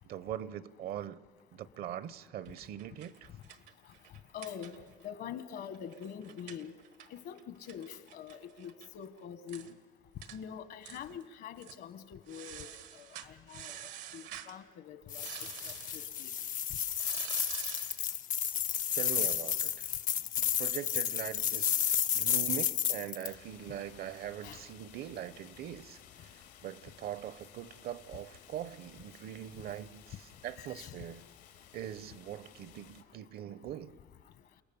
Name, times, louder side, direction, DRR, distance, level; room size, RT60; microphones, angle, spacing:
voice 1, 0.1-1.2 1.5-3.3 18.9-19.9 20.4-26.0 26.6-31.2 31.7-34.0, right 11 dB, 65° right, 17 dB, 0.8 m, -42 dB
sound 1, 2.5-5.1 5.4-5.5 5.7-8.9 9.2-9.3 9.5-9.7 10.2-10.4 10.8-11.2 11.6-11.8 12.3-14.6 15.1-16.1 16.9-18.1, right 11 dB, 90° right, 1.4 m, -47 dB
voice 2, 4.3-4.8 5.0-6.7 7.1-9.7 10.3-12.7 12.9-15.3 15.6-16.3 24.4-24.6 30.6-31.0, left 8 dB, 70° left, 11 dB, 1.5 m, -45 dB
sound 2, 15.1-23.3, left 10 dB, 50° left, 0.6 m, -32 dB
sound 3, 23.2-33.0, left 9 dB, 90° left, 2.4 m, -56 dB
29.5 x 18.5 x 7.1 m, 1.5 s
cardioid pair, 110°, 17 cm